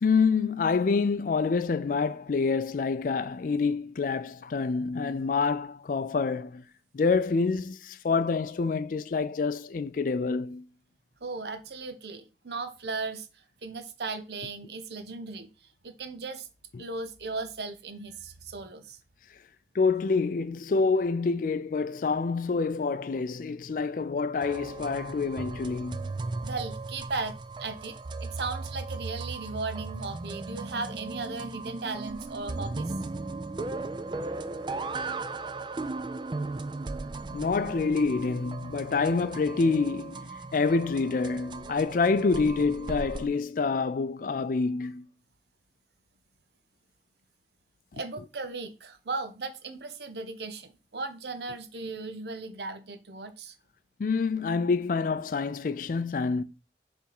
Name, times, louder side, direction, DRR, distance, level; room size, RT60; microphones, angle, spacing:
voice 1, 0.0-6.6 6.9-10.7 16.7-16.8 19.7-26.1 37.3-45.1 47.9-48.0 54.0-56.4, left 4 dB, 50° left, 0.4 m, -27 dB
voice 2, 11.2-13.3 13.6-15.5 15.8-16.5 16.8-19.0 26.4-32.9 47.9-53.5, right 3 dB, 70° right, 0.8 m, -37 dB
sound 1, 24.4-43.3, right 3 dB, 25° right, 0.4 m, -37 dB
6.8 x 3.5 x 4.7 m
head